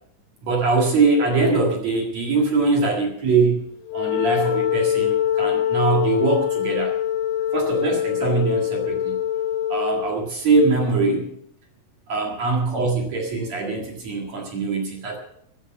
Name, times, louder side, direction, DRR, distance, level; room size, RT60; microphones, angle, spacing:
voice 1, 0.4-3.6 3.9-6.9 7.5-9.2 9.7-11.3 12.1-15.2, right 3 dB, 50° right, 0 dB, 2.4 m, -22 dB
Wind instrument woodwind instrument, 3.9-10.2, left 11 dB, 80° left, 3.6 m, -24 dB
15.5 x 10.5 x 6.0 m, 0.71 s
omnidirectional pair, 5.3 m